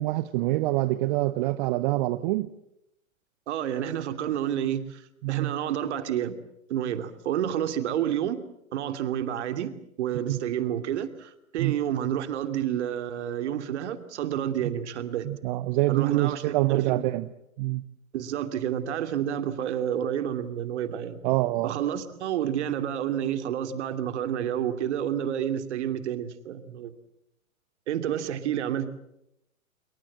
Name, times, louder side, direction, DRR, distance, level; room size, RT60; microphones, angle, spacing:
voice 1, 0.0-2.5 5.2-5.5 10.3-10.4 11.6-11.8 14.6-14.7 15.2-17.3 17.6-17.8 21.2-21.8, right 18 dB, 35° right, 15 dB, 1.0 m, -26 dB
voice 2, 3.5-5.0 5.3-6.4 6.7-8.4 8.7-15.3 15.9-17.1 18.1-21.2 21.6-26.9 27.9-28.9, right 10 dB, 55° right, 9 dB, 2.8 m, -29 dB
27.5 x 23.5 x 7.6 m, 0.83 s
figure-of-eight pair, 110°, 42 cm